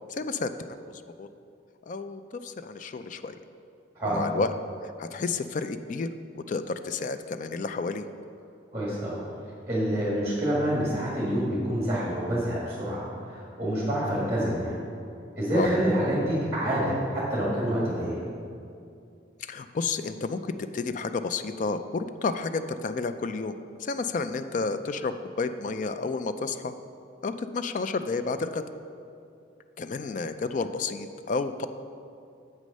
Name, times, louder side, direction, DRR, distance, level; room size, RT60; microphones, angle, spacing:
voice 1, 0.1-0.8 1.2-1.3 1.9-3.4 4.0-4.5 4.8-6.1 6.3-8.1 15.5-15.7 19.4-26.7 27.2-28.6 29.8-31.7, left 4 dB, 45° left, 10 dB, 0.4 m, -31 dB
voice 2, 8.7-9.2 9.7-14.7 15.4-18.2, right 1 dB, 15° right, -7 dB, 1.6 m, -27 dB
7.6 x 6.3 x 5.4 m, 2.5 s
head